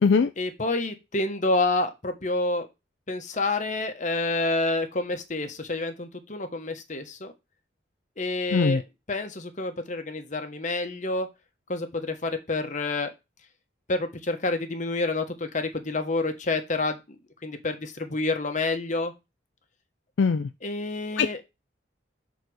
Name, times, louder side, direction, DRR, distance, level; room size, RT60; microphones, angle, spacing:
voice 1, 0.4-2.7 3.1-7.3 8.2-8.8 9.1-11.3 11.7-13.1 13.9-17.0 17.4-19.1 20.6-21.4, left 2 dB, 40° left, 1.1 m, -28 dB
voice 2, 20.2-20.5 21.2-21.3, left 5 dB, 65° left, 0.4 m, -21 dB
6.7 x 4.1 x 6.2 m
head